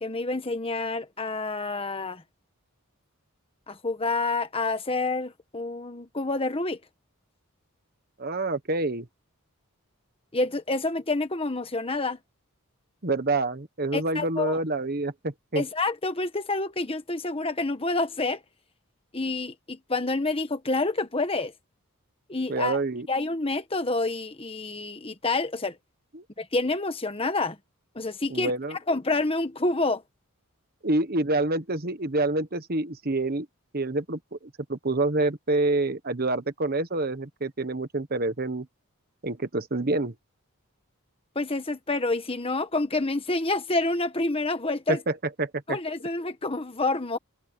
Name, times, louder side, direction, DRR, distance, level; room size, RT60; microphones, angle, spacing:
voice 1, 0.0-2.2 3.7-6.8 10.3-12.2 13.9-14.6 15.5-18.4 19.1-21.5 22.3-22.8 23.1-25.7 26.4-27.6 27.9-28.5 28.9-30.0 41.3-45.0 45.7-47.2, left 2 dB, 25° left, 1.4 m, -28 dB
voice 2, 8.2-9.1 13.0-15.6 22.5-23.1 26.1-26.2 28.3-28.8 30.8-33.5 33.7-34.4 34.7-38.6 39.2-40.1 44.9-45.8, right 2 dB, 45° right, 1.4 m, -27 dB
head